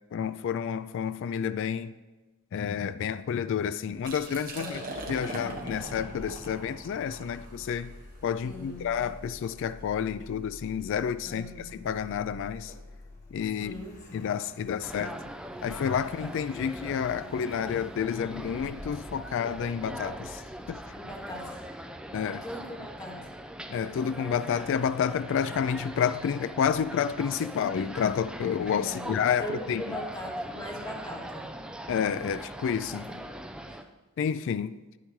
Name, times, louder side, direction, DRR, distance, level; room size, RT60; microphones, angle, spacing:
voice 1, 0.1-1.9 2.5-4.8 5.1-7.9 8.2-11.5 11.7-12.7 13.3-13.8 14.1-15.2 15.6-20.4 20.7-20.8 22.1-22.4 23.7-30.0 31.9-33.1 34.2-34.8, left 7 dB, 60° left, 0.3 m, -30 dB
Liquid, 3.9-9.7, right 2 dB, 40° right, 1.4 m, -42 dB
voice 2, 4.5-5.1 8.4-8.9 11.2-11.7 13.6-14.3 20.9-21.7 22.1-23.3 28.8-31.4 33.0-33.2 33.7-33.8, equal, 20° left, 1.8 m, -40 dB
Car, 4.9-21.8, left 1 dB, 35° left, 1.2 m, -49 dB
sound 1, 14.8-33.8, right 1 dB, 5° right, 0.4 m, -41 dB
10.0 x 10.0 x 3.1 m
head